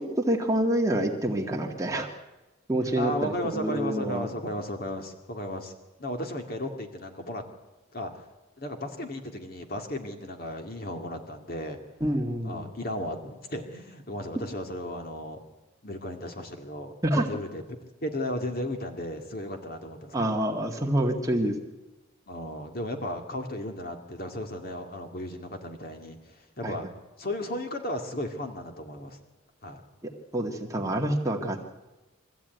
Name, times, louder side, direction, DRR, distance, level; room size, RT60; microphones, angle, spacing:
voice 1, 0.0-2.1 2.7-4.3 12.0-12.7 17.0-17.3 20.1-21.6 26.6-26.8 30.0-31.6, right 1 dB, 15° right, 1 dB, 2.0 m, -27 dB
voice 2, 2.9-5.7 6.0-7.4 7.9-8.1 8.6-11.8 12.4-15.4 15.8-17.6 18.0-20.4 22.3-26.9 27.2-29.2 29.6-29.8, left 1 dB, 45° left, 4 dB, 2.3 m, -35 dB
24.0 x 15.0 x 9.4 m, 1.1 s
head